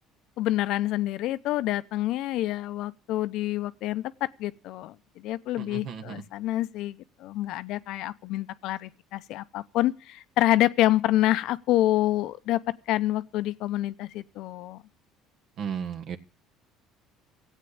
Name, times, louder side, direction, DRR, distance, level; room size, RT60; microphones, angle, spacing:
voice 1, 0.4-12.6 12.9-14.8, left 15 dB, 70° left, 0.7 m, -27 dB
voice 2, 5.6-6.2 15.6-16.2, right 7 dB, 60° right, 1.5 m, -34 dB
15.5 x 8.4 x 8.5 m
supercardioid pair, 95°, 0 cm